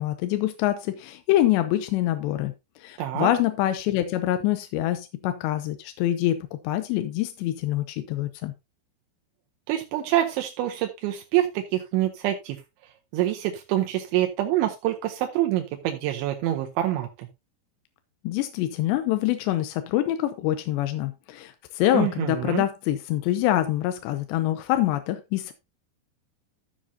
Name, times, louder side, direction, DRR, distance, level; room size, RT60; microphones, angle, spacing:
voice 1, 0.0-8.5 18.2-25.5, left 13 dB, 80° left, 2.8 m, -25 dB
voice 2, 3.0-3.3 9.7-12.6 13.1-17.1 21.9-22.7, right 13 dB, 80° right, 3.1 m, -26 dB
13.0 x 7.5 x 2.7 m
omnidirectional pair, 5.3 m